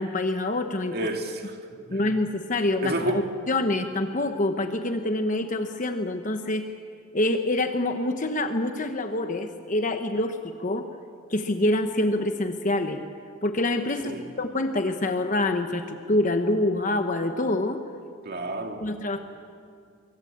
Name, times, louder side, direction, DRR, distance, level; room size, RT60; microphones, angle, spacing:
voice 1, 0.0-1.1 1.9-6.7 7.1-10.9 11.3-13.0 13.4-17.8 18.8-19.2, left 1 dB, 35° left, 1.0 m, -26 dB
voice 2, 0.9-2.0 2.8-3.3 14.0-14.3 18.2-18.9, right 1 dB, 50° right, 2.2 m, -30 dB
25.5 x 23.0 x 8.7 m
head